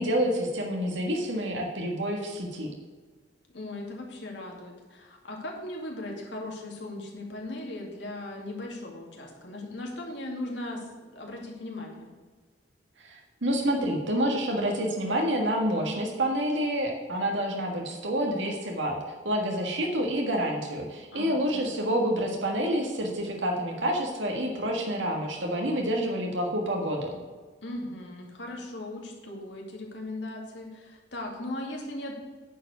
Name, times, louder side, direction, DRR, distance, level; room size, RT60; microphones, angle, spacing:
voice 1, 0.0-2.7 13.0-19.0 19.2-27.2, equal, 85° right, 1 dB, 1.7 m, -28 dB
voice 2, 3.5-12.1 21.1-21.9 27.6-32.1, left 1 dB, 70° left, 0 dB, 2.4 m, -38 dB
9.8 x 4.8 x 7.8 m, 1.4 s
head